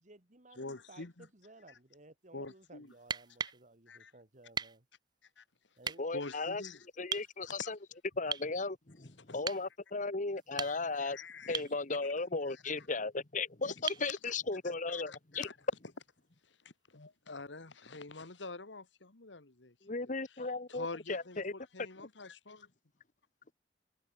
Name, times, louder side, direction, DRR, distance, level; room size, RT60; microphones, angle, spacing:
voice 1, 0.0-4.9 5.8-6.0, right 2 dB, 40° right, 2.3 m, -58 dB
voice 2, 0.6-1.3 2.3-2.9 3.9-4.1 5.4-5.5 6.1-6.8 7.4-7.7 9.3-9.4 10.6-11.6 13.6-13.7 14.2-14.3 14.9-15.6 16.9-19.7 20.0-20.1 20.7-22.7, left 3 dB, 75° left, 1.9 m, -46 dB
sound 1, 3.0-3.6 4.5-4.8 5.8-6.0 7.1-7.3 8.3-8.5 9.4-9.7 10.4-11.0 11.5-11.8 13.9-14.1 15.9-16.0, right 6 dB, 25° right, 0.5 m, -38 dB
voice 3, 6.0-6.6 7.0-7.8 8.2-15.5 19.8-21.5 22.0-22.1, left 3 dB, 45° left, 1.4 m, -36 dB
head